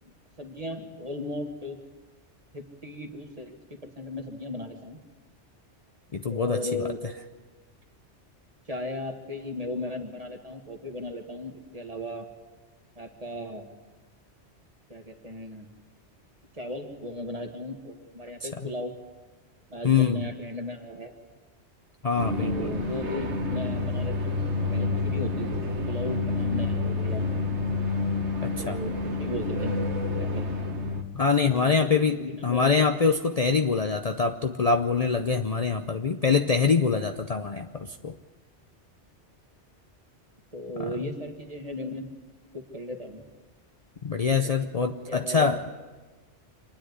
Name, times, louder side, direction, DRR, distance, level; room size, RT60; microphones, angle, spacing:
voice 1, 0.4-1.8 2.5-5.0 6.3-7.0 8.7-12.3 13.0-13.7 14.9-15.7 16.5-18.9 19.7-21.1 22.4-27.3 28.6-29.8 30.2-30.5 31.5-32.8 40.5-42.1 42.5-43.2 44.4-44.7 45.1-45.6, left 1 dB, 30° right, 3 dB, 1.9 m, -36 dB
voice 2, 6.1-6.6 18.4-18.5 19.8-20.3 22.0-22.8 28.4-28.8 31.1-32.2 32.4-38.1 44.0-45.6, left 5 dB, 40° left, 5 dB, 0.7 m, -24 dB
sound 1, 22.2-31.0, left 3 dB, 70° right, 1.7 m, -28 dB
26.5 x 10.0 x 9.6 m, 1.3 s
omnidirectional pair, 1.2 m